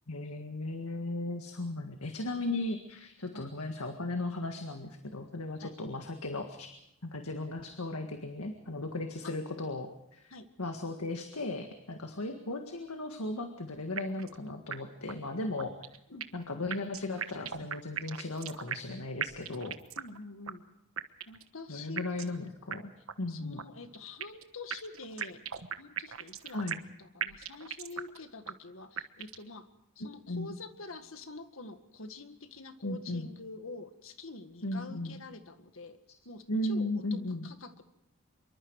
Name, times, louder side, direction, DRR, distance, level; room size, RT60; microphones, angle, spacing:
voice 1, 0.1-6.7 7.0-10.3 10.6-15.7 16.3-19.8 21.7-22.9 23.2-23.6 26.5-26.8 30.3-30.5 32.8-33.3 34.6-35.2 36.5-37.4, left 2 dB, 90° left, 5 dB, 1.8 m, -36 dB
sound 1, 14.0-14.4 14.7-14.8 15.1-15.2 15.6-16.4 16.7-18.9 19.2-20.2 20.5-20.6 21.0-21.5 22.0-22.4 22.7-22.8 23.1-23.2 23.6-24.4 24.7-26.9 27.2-28.2 28.5-28.6 29.0-29.5, right 8 dB, 70° right, 1.2 m, -37 dB
voice 2, 20.0-20.6 21.3-22.1 23.3-26.7 27.0-29.7 30.0-36.0 36.3-37.8, left 3 dB, 65° left, 8 dB, 1.9 m, -46 dB
25.5 x 23.5 x 4.8 m, 0.82 s
head